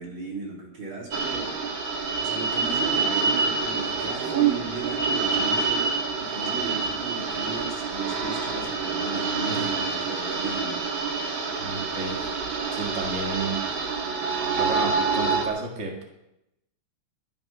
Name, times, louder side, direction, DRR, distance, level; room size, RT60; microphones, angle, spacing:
voice 1, 0.0-1.5 2.2-10.9, right 3 dB, 90° right, -3 dB, 5.0 m, -35 dB
sound 1, 1.1-15.5, right 5 dB, 70° right, 2.4 m, -27 dB
voice 2, 11.6-12.2 12.7-13.6 14.6-16.0, right 3 dB, 35° right, 0 dB, 2.2 m, -31 dB
20.5 x 7.2 x 6.2 m, 0.87 s
omnidirectional pair, 2.2 m